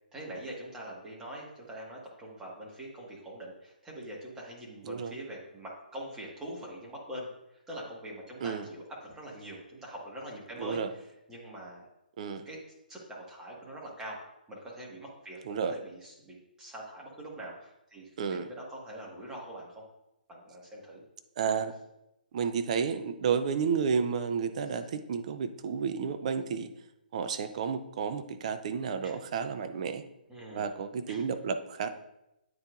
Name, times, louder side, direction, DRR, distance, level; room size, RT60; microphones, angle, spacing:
voice 1, 0.1-11.8 12.4-12.6 12.9-14.2 14.5-19.8 20.3-21.0 24.7-24.8 29.0-29.2 30.3-30.7 31.1-31.2, right 1 dB, 10° right, -4 dB, 1.6 m, -43 dB
voice 2, 21.4-21.7 22.3-26.7 27.1-30.0 30.5-31.9, right 6 dB, 45° right, 9 dB, 0.5 m, -31 dB
9.4 x 4.4 x 2.5 m, 0.88 s
figure-of-eight pair, 135°, 5 cm